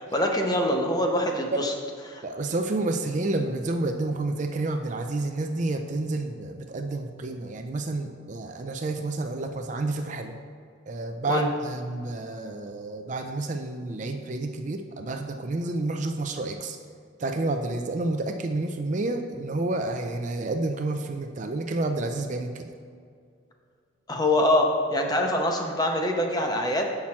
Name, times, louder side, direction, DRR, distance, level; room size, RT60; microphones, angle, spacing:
voice 1, 0.0-1.7 2.1-2.2 11.3-11.5 24.1-27.0, left 1 dB, 20° left, 2 dB, 0.7 m, -24 dB
voice 2, 2.2-10.3 10.9-16.8 17.2-22.6, right 2 dB, 40° right, 5 dB, 0.4 m, -29 dB
7.4 x 5.9 x 4.4 m, 2.2 s
head